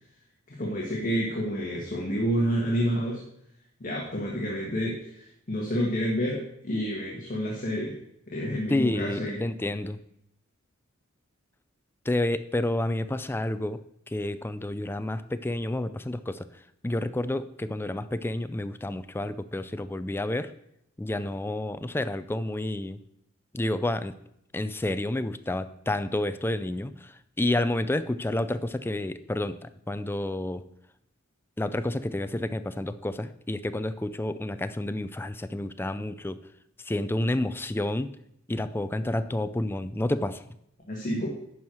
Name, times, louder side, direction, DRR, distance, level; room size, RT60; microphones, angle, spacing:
voice 1, 0.5-3.2 3.8-8.0 8.3-9.4 40.9-41.4, equal, 40° left, -3 dB, 1.6 m, -29 dB
voice 2, 8.7-10.0 12.1-13.8 14.1-16.5 16.8-20.5 21.0-23.0 23.5-24.1 24.5-27.1 27.4-30.6 31.6-36.4 36.9-38.1 38.5-40.4, left 1 dB, 10° left, 12 dB, 0.4 m, -29 dB
11.0 x 4.6 x 6.3 m, 0.76 s
head